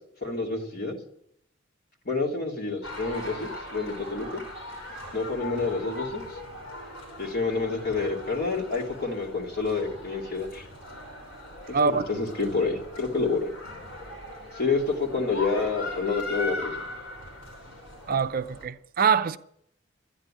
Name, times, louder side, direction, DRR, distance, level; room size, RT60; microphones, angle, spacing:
voice 1, 0.2-1.0 2.0-4.4 5.1-6.2 7.2-10.6 11.8-13.5 14.6-16.7, left 4 dB, 50° left, 2.7 m, -28 dB
sound 1, 2.8-18.7, left 2 dB, 80° left, 5.4 m, -40 dB
voice 2, 18.1-19.4, right 5 dB, 45° right, 0.5 m, -24 dB
11.5 x 10.0 x 8.6 m
head